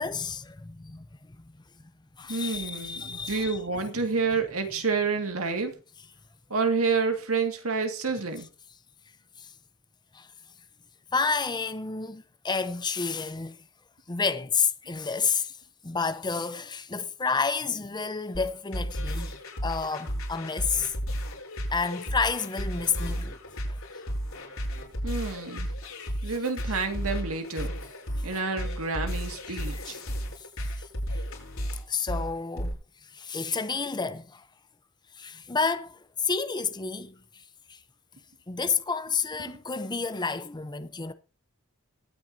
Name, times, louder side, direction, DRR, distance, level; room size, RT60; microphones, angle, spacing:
voice 1, 0.0-1.6 2.2-3.6 9.4-9.5 10.1-10.3 11.1-13.6 14.1-15.6 15.8-19.3 19.6-20.9 21.7-23.4 23.7-23.8 29.5-30.0 30.4-30.5 30.8-30.9 31.1-31.2 31.7-32.8 33.1-34.4 35.1-37.4 37.7-37.8 38.5-41.1, left 5 dB, 20° left, 0.7 m, -30 dB
voice 2, 2.3-5.7 6.5-8.5 25.0-25.7 26.2-27.7 28.2-30.0, right 4 dB, 85° right, 2.1 m, -29 dB
sound 1, 18.3-32.7, equal, 85° left, 8.0 m, -33 dB
22.5 x 9.2 x 2.8 m
head